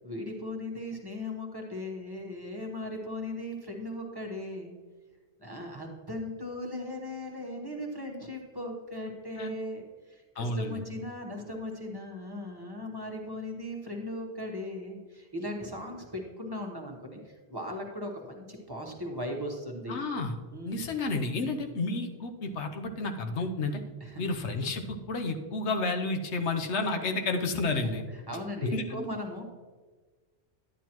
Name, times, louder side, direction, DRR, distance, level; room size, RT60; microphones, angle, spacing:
voice 1, 0.0-4.7 5.4-20.0 20.5-20.8 24.0-24.2 27.7-27.8 28.3-29.4, left 1 dB, 20° right, 0 dB, 1.1 m, -38 dB
voice 2, 10.4-10.8 19.9-20.3 20.7-23.8 24.2-28.0 28.7-29.1, left 3 dB, 80° left, 5 dB, 1.1 m, -31 dB
11.0 x 9.2 x 3.0 m, 1.4 s
omnidirectional pair, 1.1 m